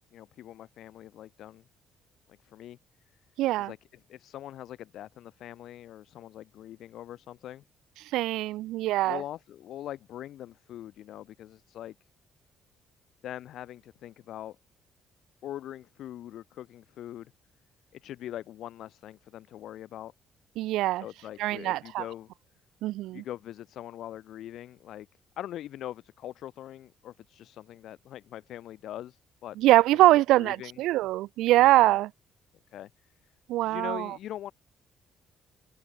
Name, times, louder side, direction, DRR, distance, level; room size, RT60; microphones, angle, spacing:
voice 1, 0.1-1.6 2.3-2.8 3.6-3.8 4.1-7.6 9.1-11.9 13.2-14.6 15.4-17.3 17.9-20.1 21.0-22.3 23.1-25.1 25.4-29.6 30.1-30.8 31.6-32.0 32.7-32.9 33.6-34.5, left 12 dB, 65° left, 5.4 m, -42 dB
voice 2, 3.4-3.7 8.0-9.2 20.6-21.0 21.4-22.0 22.8-23.2 29.6-32.1 33.5-34.2, right 16 dB, 90° right, 1.6 m, -23 dB
open air
cardioid pair, 140°, 0 cm